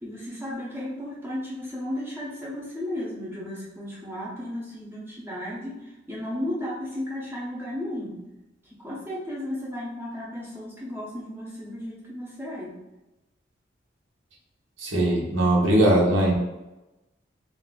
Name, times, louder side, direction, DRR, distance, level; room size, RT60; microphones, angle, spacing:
voice 1, 0.0-5.8 6.1-8.2 8.8-12.7, left 1 dB, 10° right, -7 dB, 0.6 m, -34 dB
voice 2, 14.8-16.3, right 1 dB, 90° right, -2 dB, 0.8 m, -20 dB
2.6 x 2.4 x 3.5 m, 1.0 s
head